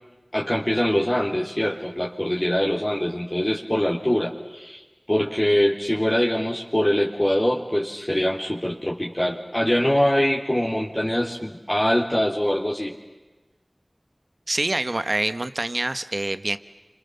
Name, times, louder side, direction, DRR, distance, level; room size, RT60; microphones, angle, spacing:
voice 1, 0.3-4.8 5.1-12.9, equal, 25° left, -3 dB, 3.5 m, -23 dB
voice 2, 14.5-16.6, right 2 dB, 55° right, 12 dB, 1.3 m, -26 dB
30.0 x 27.0 x 7.1 m, 1.2 s
wide cardioid pair, 45°, 0 cm